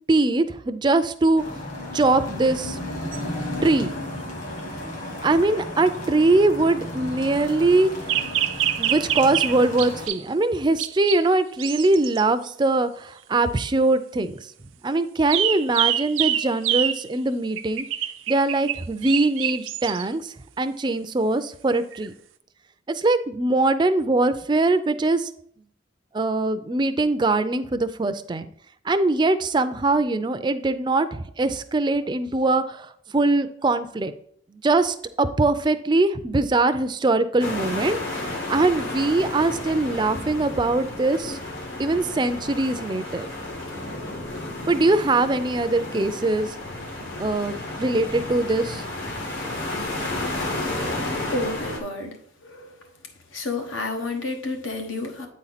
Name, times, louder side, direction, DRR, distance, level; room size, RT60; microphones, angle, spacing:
voice 1, 0.1-1.6 1.9-2.8 3.6-3.9 5.2-7.9 8.8-14.4 14.8-17.9 18.3-22.1 22.9-25.3 26.1-28.5 28.9-34.1 34.6-38.0 38.5-41.4 41.8-43.3 44.7-46.5 47.2-48.8, right 2 dB, 25° right, 10 dB, 0.4 m, -22 dB
sound 1, 1.4-10.1, left 1 dB, 40° left, 1.2 m, -34 dB
sound 2, 3.1-3.2 8.1-10.2 10.8-11.2 11.6-12.3 15.3-17.1 17.6-20.1 21.9-22.1, right 11 dB, 90° right, 0.5 m, -26 dB
sound 3, 37.4-51.8, left 2 dB, 70° left, 1.6 m, -32 dB
voice 2, 51.3-52.2 52.4-52.7 53.3-55.3, left 2 dB, 90° left, 4 dB, 1.2 m, -30 dB
8.6 x 4.2 x 4.0 m, 0.66 s
head